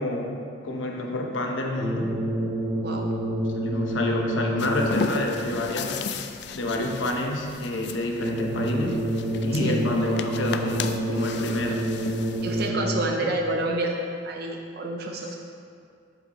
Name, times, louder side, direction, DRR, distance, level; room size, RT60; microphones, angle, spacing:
voice 1, 0.0-2.2 3.5-6.0 6.5-11.8 13.2-13.3 15.2-15.4, left 1 dB, 80° left, 1 dB, 1.0 m, -28 dB
sound 1, 1.8-5.2 8.2-13.2, right 1 dB, 40° right, 1.4 m, -28 dB
sound 2, 4.6-12.7, left 4 dB, 60° left, 0.4 m, -35 dB
voice 2, 12.4-14.0 14.2-15.4, right 2 dB, 55° right, 1 dB, 0.6 m, -28 dB
8.3 x 7.8 x 3.1 m, 2.3 s
head